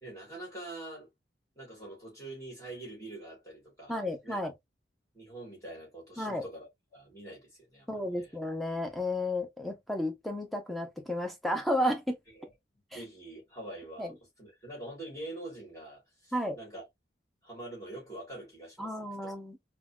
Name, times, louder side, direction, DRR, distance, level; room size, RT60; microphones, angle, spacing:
voice 1, 0.0-1.1 1.6-4.4 5.1-8.4 12.3-12.5 12.9-14.1 14.4-16.8 17.4-19.3, right 1 dB, 20° left, 1.9 m, -45 dB
voice 2, 3.9-4.5 6.2-6.5 7.9-12.2 12.9-13.0 14.0-14.1 16.3-16.6 18.8-19.6, left 1 dB, ahead, 0.6 m, -32 dB
3.8 x 2.2 x 2.4 m
head